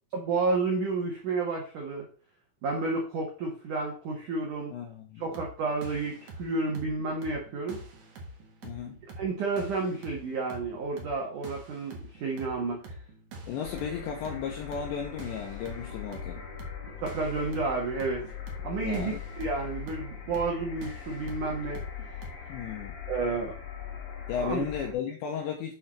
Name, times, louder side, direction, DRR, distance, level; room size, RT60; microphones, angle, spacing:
voice 1, 0.1-2.0 2.6-4.7 5.2-7.8 9.2-13.0 17.0-18.3 18.6-21.8 23.1-23.5 24.4-24.7, right 3 dB, 90° right, 0 dB, 1.7 m, -31 dB
voice 2, 4.7-5.2 8.6-9.0 13.5-16.4 18.8-19.2 22.5-23.0 24.3-25.7, left 7 dB, 75° left, 1 dB, 2.8 m, -34 dB
sound 1, 5.2-22.3, right 2 dB, 65° right, 1.8 m, -46 dB
sound 2, 13.6-24.9, left 8 dB, 50° left, 2.7 m, -41 dB
7.8 x 6.3 x 4.2 m, 0.39 s
omnidirectional pair, 6.0 m